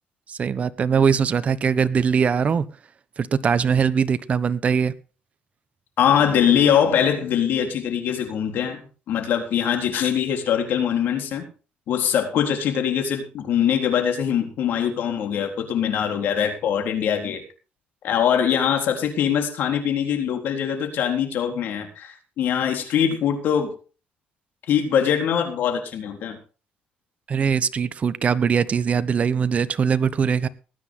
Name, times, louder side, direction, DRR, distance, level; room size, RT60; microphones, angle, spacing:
voice 1, 0.3-2.7 3.2-4.9 27.3-30.5, right 6 dB, 40° right, 1.0 m, -21 dB
voice 2, 6.0-8.8 9.1-11.4 11.9-17.4 18.0-23.7 24.7-26.4, left 8 dB, 70° left, 3.9 m, -22 dB
19.0 x 9.8 x 3.8 m
cardioid pair, 105°, 3 cm